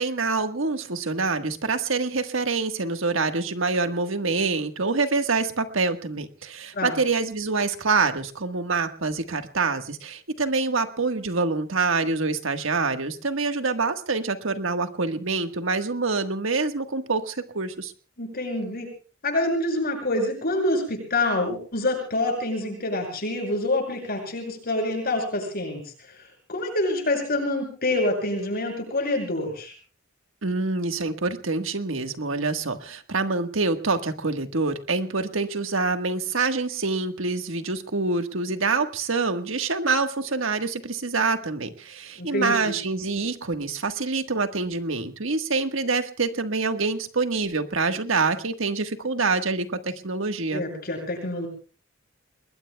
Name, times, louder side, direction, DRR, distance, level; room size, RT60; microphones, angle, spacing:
voice 1, 0.0-17.9 30.4-50.6, right 4 dB, 70° right, 7 dB, 1.5 m, -26 dB
voice 2, 18.2-18.9 19.2-25.8 26.1-26.2 26.5-29.7 42.2-42.7 50.5-51.5, left 2 dB, 50° left, 2 dB, 6.3 m, -26 dB
29.5 x 20.5 x 2.3 m, 0.37 s
head